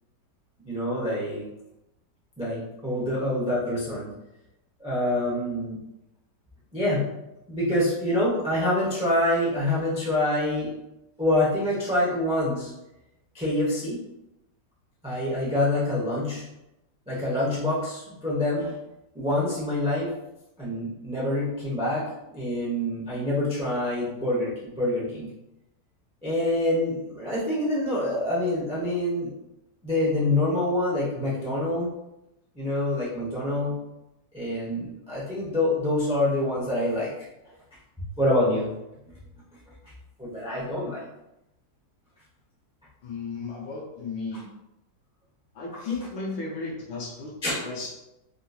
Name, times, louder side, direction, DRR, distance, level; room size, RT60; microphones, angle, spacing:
voice 1, 0.6-1.5 2.4-4.1 4.8-5.8 6.7-7.1 7.5-10.7 11.2-12.7 13.3-14.0 15.0-16.4 17.1-18.8 19.1-20.1 20.6-22.0 22.3-25.3 26.2-29.3 29.8-31.9 32.5-33.8 34.3-37.1 38.0-38.7 40.2-41.0 45.7-45.8 47.4-47.7, left 1 dB, 10° right, -7 dB, 0.3 m, -26 dB
voice 2, 43.0-44.4 45.5-47.9, left 3 dB, 85° left, -4 dB, 1.4 m, -34 dB
3.8 x 2.7 x 2.3 m, 0.91 s
omnidirectional pair, 2.0 m